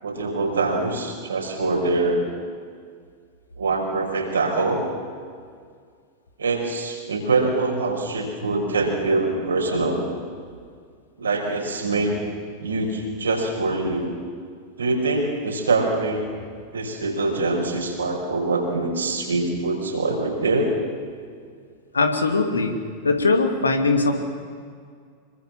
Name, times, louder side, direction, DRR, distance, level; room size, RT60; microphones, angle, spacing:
voice 1, 0.0-2.2 3.6-4.8 6.4-10.0 11.2-12.2 12.6-14.1 14.8-16.3 16.7-20.7 23.0-23.1, right 3 dB, 70° right, 1 dB, 5.8 m, -24 dB
voice 2, 21.9-22.8 23.0-24.2, left 3 dB, 75° left, 6 dB, 2.6 m, -20 dB
26.5 x 23.5 x 7.5 m, 2.1 s
figure-of-eight pair, 90°, 0 cm